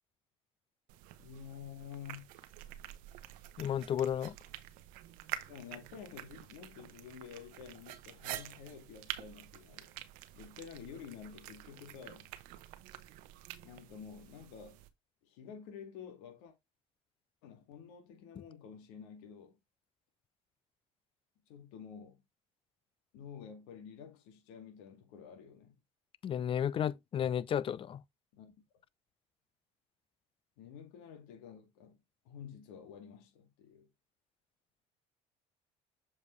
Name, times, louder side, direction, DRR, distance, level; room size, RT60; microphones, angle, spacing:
sound 1, 0.9-14.9, right 14 dB, 75° right, 1.0 m, -48 dB
voice 1, 1.2-2.3 5.5-9.9 10.3-12.3 13.6-14.8 15.2-16.5 17.4-19.6 21.5-22.2 23.1-25.8 28.3-28.6 30.6-32.0 32.3-33.9, left 7 dB, 80° left, 2.2 m, -50 dB
voice 2, 3.6-4.3 26.2-28.0, left 9 dB, 40° left, 0.6 m, -33 dB
7.2 x 4.9 x 3.2 m
supercardioid pair, 85°, 14 cm